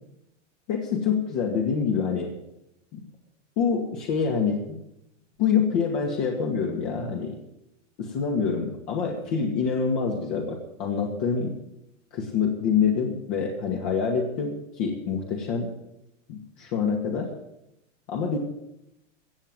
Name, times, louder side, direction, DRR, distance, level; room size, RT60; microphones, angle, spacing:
voice 1, 0.7-2.3 2.9-3.0 3.6-4.8 5.4-7.4 8.0-11.6 12.1-15.7 16.3-17.3 18.1-18.4, left 6 dB, 50° left, 1 dB, 2.2 m, -26 dB
16.0 x 7.5 x 7.8 m, 0.84 s
hypercardioid pair, 120°, 38 cm